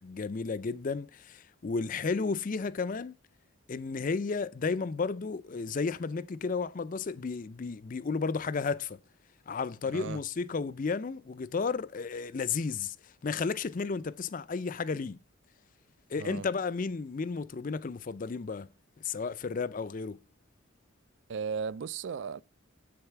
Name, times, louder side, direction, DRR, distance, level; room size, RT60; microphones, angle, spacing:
voice 1, 0.0-3.1 3.7-9.0 9.5-15.2 16.1-18.7 19.0-20.2, left 4 dB, 40° left, 0.4 m, -33 dB
voice 2, 9.8-10.2 16.2-16.4 21.3-22.4, right 6 dB, 60° right, 0.3 m, -36 dB
8.0 x 6.8 x 4.6 m
head